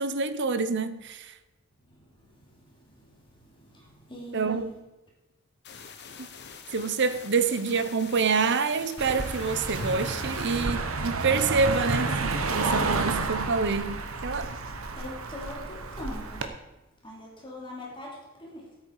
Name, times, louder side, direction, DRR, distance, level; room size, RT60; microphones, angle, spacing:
voice 1, 0.0-1.3 4.3-4.7 6.2-6.3 6.7-14.5, right 4 dB, 60° right, 0.8 m, -27 dB
voice 2, 1.8-4.9 5.9-6.7 14.3-14.4 14.6-18.8, left 1 dB, 25° left, 3.2 m, -44 dB
sound 1, 5.6-10.6, left 6 dB, 55° left, 1.2 m, -45 dB
Car passing by, 9.0-16.5, right 3 dB, 85° right, 1.2 m, -30 dB
sound 2, 9.7-12.0, equal, ahead, 3.5 m, -40 dB
14.0 x 8.4 x 4.8 m
head